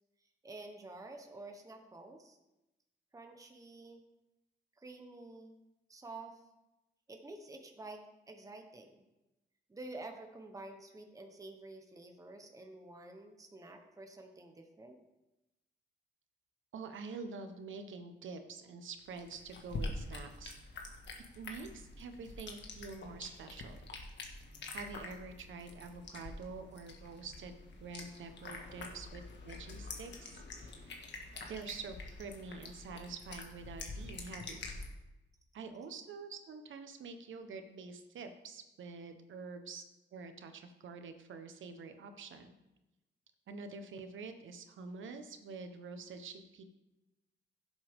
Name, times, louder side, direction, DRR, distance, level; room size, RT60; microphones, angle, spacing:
voice 1, 0.4-2.4 3.1-4.0 4.8-5.5 5.9-6.4 7.1-9.0 9.7-15.0, right 2 dB, 15° right, 4 dB, 1.1 m, -49 dB
voice 2, 16.7-20.6 21.1-23.8 24.7-31.0 31.5-34.7 35.5-39.8 40.1-42.6 43.5-46.6, right 4 dB, 90° right, 7 dB, 1.2 m, -47 dB
sound 1, 19.0-34.9, left 3 dB, 65° left, 1.7 m, -46 dB
16.0 x 7.8 x 3.6 m, 0.97 s
wide cardioid pair, 150°, 20 cm